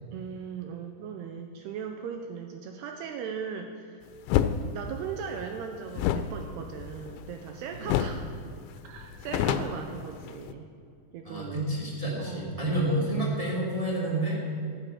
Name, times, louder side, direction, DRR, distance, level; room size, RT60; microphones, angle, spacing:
voice 1, 0.1-4.1 4.7-8.2 8.8-10.7 11.1-11.7 12.2-12.5, right 7 dB, 85° right, 5 dB, 2.5 m, -38 dB
sound 1, 4.3-4.6 5.9-7.5 7.9-8.2 8.5-8.6 9.0-10.5, left 10 dB, 90° left, 3.0 m, -28 dB
voice 2, 11.2-14.4, right 1 dB, 15° right, -4 dB, 1.3 m, -29 dB
14.5 x 10.0 x 5.8 m, 2.4 s
omnidirectional pair, 5.3 m